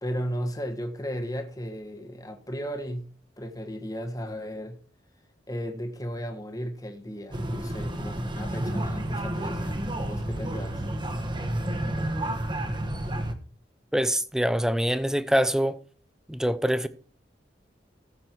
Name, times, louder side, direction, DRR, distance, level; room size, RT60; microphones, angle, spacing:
voice 1, 0.0-3.1 3.4-4.8 5.5-10.8, equal, 20° left, 1.3 m, -35 dB
sound 1, 7.3-13.3, right 1 dB, 25° right, 1.3 m, -30 dB
voice 2, 13.9-15.8 16.3-16.9, equal, 5° right, 0.7 m, -24 dB
15.0 x 7.6 x 4.6 m
head